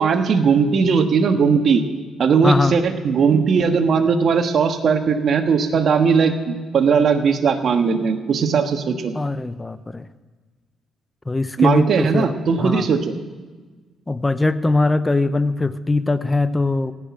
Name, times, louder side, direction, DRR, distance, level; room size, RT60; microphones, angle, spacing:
voice 1, 0.0-1.8 2.2-9.2 11.6-13.2, right 5 dB, 55° right, 6 dB, 1.3 m, -18 dB
voice 2, 2.4-2.8 9.1-10.1 11.3-12.9 14.1-16.9, left 2 dB, 15° left, 14 dB, 0.6 m, -21 dB
16.5 x 6.0 x 9.8 m, 1.4 s
cardioid pair, 90°, 0 cm